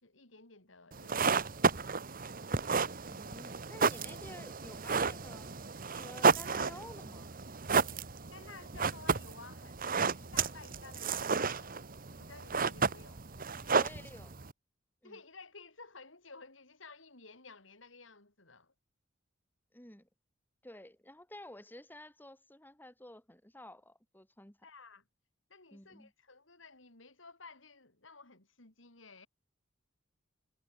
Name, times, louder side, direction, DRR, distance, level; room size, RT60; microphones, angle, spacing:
voice 1, 0.0-2.3 8.3-11.8 12.1-13.8 15.0-18.7 24.6-25.0 25.5-29.3, left 4 dB, 75° left, 5.0 m, -54 dB
sound 1, 0.9-14.5, right 5 dB, 45° right, 1.3 m, -32 dB
voice 2, 3.1-7.3 13.7-14.4 15.0-15.2 19.7-20.1 20.6-24.6 25.7-26.1, left 1 dB, 10° left, 4.7 m, -52 dB
head